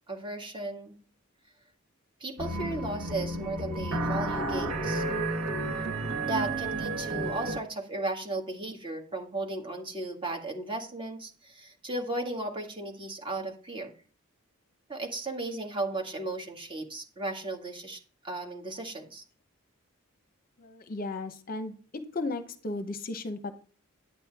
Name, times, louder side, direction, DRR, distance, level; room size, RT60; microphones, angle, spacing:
voice 1, 0.1-0.9 2.2-5.0 6.2-13.9 14.9-18.0 18.2-19.2, right 2 dB, 25° right, 1 dB, 1.8 m, -35 dB
sound 1, 2.4-7.6, right 2 dB, 85° right, 1.5 m, -31 dB
voice 2, 20.6-23.5, left 2 dB, 40° left, 9 dB, 0.7 m, -35 dB
9.8 x 8.8 x 3.5 m, 0.41 s
head